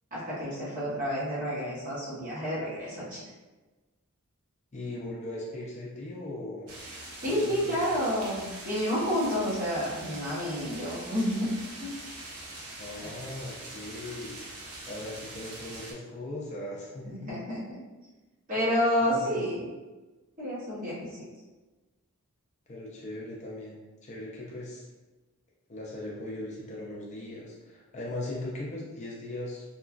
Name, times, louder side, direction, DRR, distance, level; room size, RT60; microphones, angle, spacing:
voice 1, 0.1-3.2 7.2-11.5 11.8-11.9 13.0-13.1 17.1-17.6 18.5-19.8 20.4-21.1, equal, 40° right, -7 dB, 1.0 m, -29 dB
voice 2, 4.7-6.7 7.2-7.8 12.8-14.6 14.9-17.3 19.0-19.5 22.7-23.8 24.0-24.8 25.7-29.6, left 1 dB, 30° left, -4 dB, 0.5 m, -39 dB
sound 1, 6.7-15.9, right 2 dB, 80° right, 0.7 m, -43 dB
2.9 x 2.3 x 2.4 m, 1.2 s
head